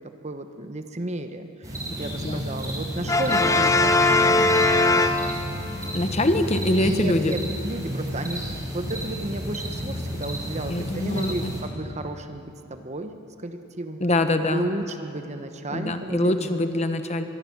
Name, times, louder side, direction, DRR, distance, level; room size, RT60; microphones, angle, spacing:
voice 1, 0.0-4.3 6.8-14.0 14.5-16.5, right 1 dB, 30° right, 7 dB, 1.1 m, -33 dB
sound 1, 1.6-11.6, equal, 15° right, 5.2 m, -32 dB
Brass instrument, 3.1-5.7, left 2 dB, 15° left, 0.9 m, -20 dB
voice 2, 5.9-7.4 10.7-11.5 14.0-14.7 15.7-17.2, left 1 dB, 30° left, 8 dB, 1.2 m, -24 dB
24.5 x 22.0 x 7.3 m, 3.0 s
head